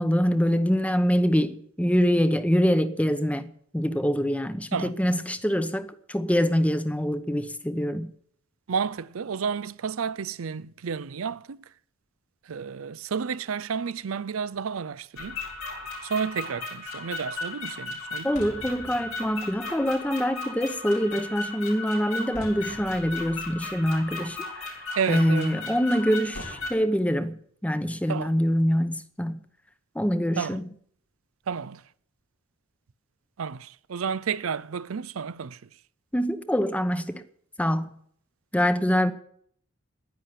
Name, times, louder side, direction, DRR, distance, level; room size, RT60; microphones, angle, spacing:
voice 1, 0.0-8.1 18.2-24.8 25.1-29.4 29.9-30.7 36.1-37.2 37.6-38.0 38.5-39.1, equal, 5° left, 0.9 m, -25 dB
voice 2, 8.7-11.6 12.4-15.4 16.0-18.4 24.9-25.7 28.1-28.3 30.4-30.6 31.5-31.8 33.4-35.7, right 6 dB, 85° right, 0.5 m, -31 dB
sound 1, 15.2-26.7, left 3 dB, 85° left, 4.4 m, -36 dB
10.5 x 10.0 x 9.6 m
head